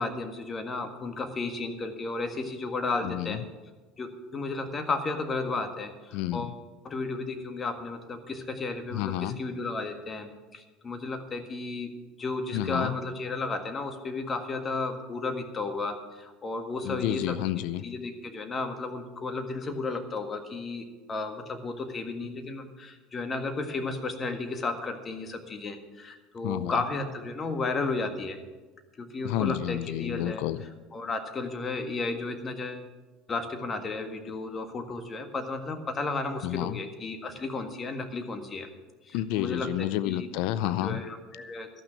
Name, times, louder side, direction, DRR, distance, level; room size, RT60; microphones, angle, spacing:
voice 1, 0.0-3.4 4.0-6.6 6.8-17.4 17.8-28.4 29.0-30.4 30.9-32.8 33.3-38.7 39.1-39.7 40.1-40.3 40.6-41.7, left 3 dB, 30° left, 7 dB, 1.7 m, -33 dB
voice 2, 3.0-3.4 6.1-6.5 8.9-9.4 12.5-13.0 16.8-17.8 26.4-26.8 29.2-30.6 36.4-36.8 39.1-41.0, left 13 dB, 70° left, 15 dB, 0.5 m, -30 dB
13.0 x 6.1 x 8.6 m, 1.3 s
hypercardioid pair, 80°, 0 cm